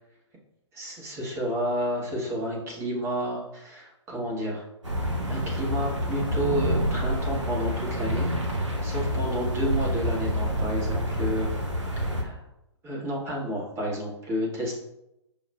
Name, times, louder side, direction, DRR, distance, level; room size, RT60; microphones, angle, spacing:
voice 1, 0.7-4.7 5.3-11.5 12.0-12.5 12.8-14.7, equal, 20° right, -3 dB, 1.0 m, -31 dB
sound 1, 4.8-12.2, equal, 80° right, 0.9 m, -28 dB
6.5 x 2.3 x 2.2 m, 0.86 s
figure-of-eight pair, 115°, 15 cm